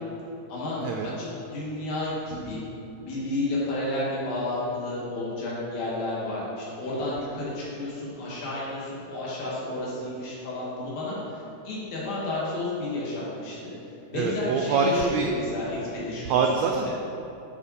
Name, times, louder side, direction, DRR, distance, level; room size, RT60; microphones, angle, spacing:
voice 1, 0.5-2.6 3.0-13.7 14.1-16.4, left 2 dB, 70° left, -7 dB, 3.5 m, -31 dB
voice 2, 14.1-15.3 16.2-17.1, right 5 dB, 85° right, 2 dB, 1.5 m, -25 dB
12.0 x 5.6 x 4.2 m, 2.9 s
omnidirectional pair, 3.8 m